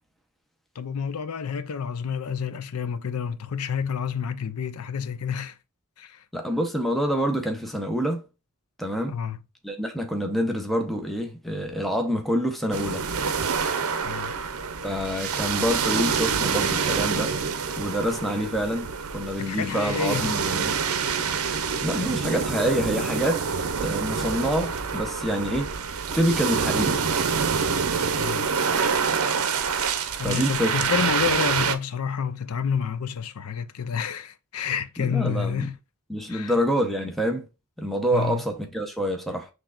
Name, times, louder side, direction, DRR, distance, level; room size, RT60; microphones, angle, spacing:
voice 1, 0.8-5.6 6.0-6.2 9.1-9.4 14.0-14.3 19.4-20.3 28.2-28.5 30.2-35.8 36.3-36.5 38.1-38.4, left 6 dB, 90° left, 0.5 m, -29 dB
voice 2, 6.3-8.2 8.8-9.2 9.6-13.1 14.8-17.4 17.8-20.8 21.8-23.5 23.8-25.7 26.1-27.0 30.2-30.8 35.0-35.7 36.1-37.5 37.8-39.5, equal, ahead, 0.8 m, -27 dB
sound 1, 12.7-31.7, right 6 dB, 75° right, 0.6 m, -26 dB
5.8 x 3.3 x 2.4 m
head